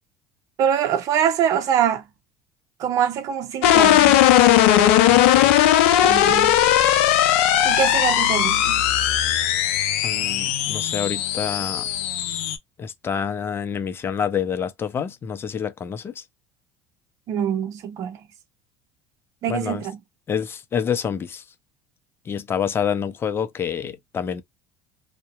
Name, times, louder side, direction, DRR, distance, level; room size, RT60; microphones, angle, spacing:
voice 1, 0.6-2.0 2.8-4.3 6.0-6.6 7.6-8.8 17.3-18.2 19.4-19.9, right 9 dB, 55° right, 0.7 m, -24 dB
sound 1, 3.6-12.6, left 12 dB, 80° left, 0.5 m, -18 dB
voice 2, 5.1-5.5 10.0-11.9 12.8-16.2 19.5-19.9 20.3-21.4 22.3-24.4, left 7 dB, 35° left, 0.5 m, -27 dB
2.6 x 2.1 x 2.3 m
hypercardioid pair, 80°, 7 cm